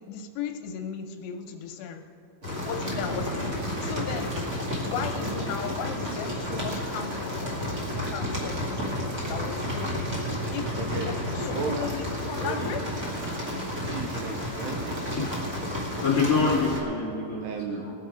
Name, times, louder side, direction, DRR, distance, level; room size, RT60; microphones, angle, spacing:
voice 1, 0.0-2.0 2.6-4.4 4.8-10.1 10.5-12.8, left 7 dB, 80° left, 4 dB, 2.6 m, -36 dB
sound 1, 2.4-16.8, left 1 dB, 60° right, 0.8 m, -31 dB
voice 2, 10.8-11.1 11.5-11.9 12.4-12.7 13.8-15.0 17.4-17.9, right 6 dB, 85° right, 3 dB, 2.5 m, -35 dB
voice 3, 16.0-17.9, left 4 dB, 25° left, -5 dB, 2.1 m, -26 dB
20.0 x 7.6 x 5.0 m, 2.9 s
omnidirectional pair, 5.3 m